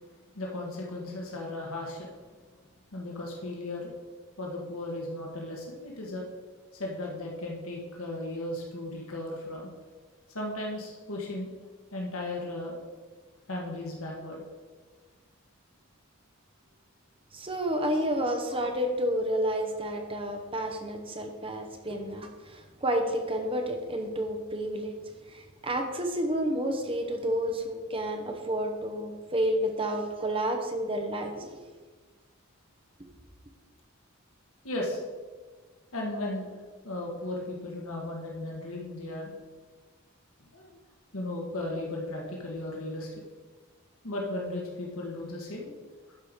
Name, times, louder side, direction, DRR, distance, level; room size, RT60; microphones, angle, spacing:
voice 1, 0.3-2.1 2.9-3.9 4.4-6.2 6.8-9.7 10.3-11.5 11.9-12.8 13.5-14.4 21.9-22.0 34.6-35.0 35.9-36.5 36.8-39.3 40.5-40.7 41.1-43.1 44.0-45.7, left 1 dB, 75° left, -1 dB, 1.4 m, -36 dB
voice 2, 17.3-25.0 25.3-31.6, right 1 dB, 25° right, 4 dB, 0.9 m, -30 dB
11.5 x 4.7 x 5.2 m, 1.4 s
head